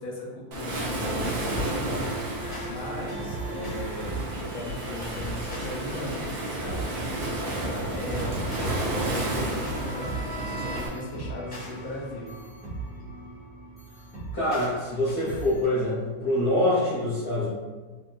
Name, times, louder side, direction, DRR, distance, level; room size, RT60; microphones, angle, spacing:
voice 1, 0.0-2.1 2.7-12.3, left 1 dB, 60° left, -4 dB, 1.0 m, -38 dB
Waves surf, 0.5-10.9, right 1 dB, 85° right, 1.4 m, -31 dB
sound 1, 2.4-15.6, right 2 dB, 10° left, 0.6 m, -38 dB
voice 2, 14.3-17.5, left 1 dB, 90° left, -9 dB, 0.5 m, -25 dB
3.6 x 2.3 x 2.3 m, 1.3 s
omnidirectional pair, 1.9 m